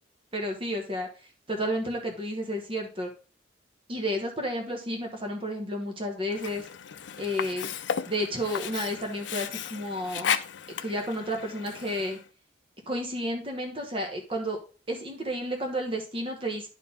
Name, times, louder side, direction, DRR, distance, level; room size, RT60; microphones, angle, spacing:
voice 1, 0.3-1.1 1.5-3.1 3.9-6.6 7.2-7.7 8.1-10.3 10.8-12.2 12.9-14.6 14.9-16.7, equal, 30° right, 2 dB, 1.3 m, -31 dB
Sink (filling or washing), 6.3-12.3, left 8 dB, 75° left, 0.5 m, -34 dB
10.5 x 4.5 x 3.6 m, 0.35 s
head